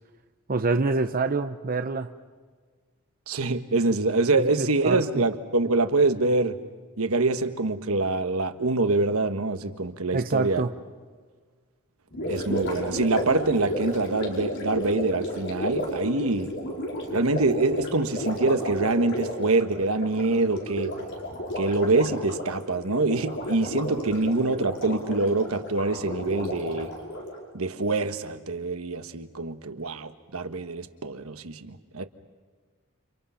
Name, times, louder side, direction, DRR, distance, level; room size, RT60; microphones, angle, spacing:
voice 1, 0.5-2.1 4.3-5.0 10.1-10.7, right 3 dB, 40° right, 8 dB, 0.7 m, -26 dB
voice 2, 3.3-6.6 7.0-10.6 12.3-16.5 17.1-20.9 21.6-26.9 27.5-32.0, right 3 dB, 75° right, 9 dB, 1.4 m, -25 dB
Gurgling, 12.1-27.4, equal, 55° left, 5.5 m, -32 dB
30.0 x 28.0 x 5.7 m, 1.5 s
head